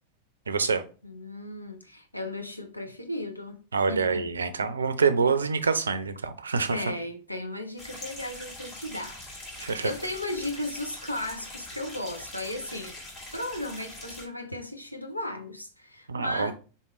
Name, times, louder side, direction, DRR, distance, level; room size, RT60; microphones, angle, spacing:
voice 1, 0.5-0.8 3.7-6.8 9.6-9.9 16.1-16.5, right 5 dB, 75° right, 0.5 m, -26 dB
voice 2, 1.0-3.6 3.9-4.3 6.7-9.4 9.8-12.9 13.3-16.5, left 1 dB, 90° left, 0.5 m, -35 dB
sound 1, 7.8-14.2, left 1 dB, 35° left, 1.9 m, -43 dB
4.0 x 3.6 x 3.0 m
figure-of-eight pair, 90°, 0 cm